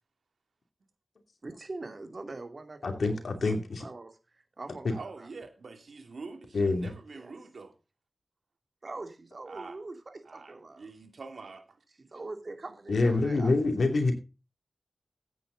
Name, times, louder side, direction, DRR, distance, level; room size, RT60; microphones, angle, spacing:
voice 1, 1.4-3.2 3.8-5.3 7.1-7.3 8.8-10.9 12.0-13.5 13.8-13.9, right 2 dB, 50° right, 6 dB, 2.6 m, -43 dB
voice 2, 2.8-3.8 4.8-4.9 6.5-6.9 12.9-14.1, left 3 dB, 80° left, 5 dB, 2.7 m, -26 dB
voice 3, 4.9-7.7 9.5-9.8 10.2-11.8, right 4 dB, 80° right, 6 dB, 2.6 m, -45 dB
14.0 x 9.3 x 4.0 m, 0.31 s
cardioid pair, 50°, 0 cm